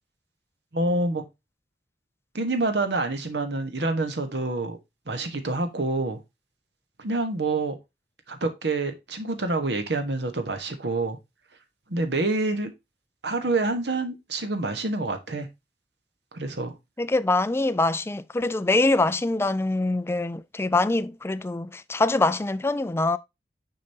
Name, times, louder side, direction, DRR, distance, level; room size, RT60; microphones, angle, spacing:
voice 1, 0.7-1.2 2.3-4.8 5.1-6.2 7.0-7.8 8.3-11.2 11.9-12.7 13.2-15.5 16.3-16.8, right 2 dB, 75° right, 1.3 m, -27 dB
voice 2, 17.0-23.2, left 2 dB, 15° left, 0.3 m, -24 dB
6.6 x 5.3 x 2.7 m
head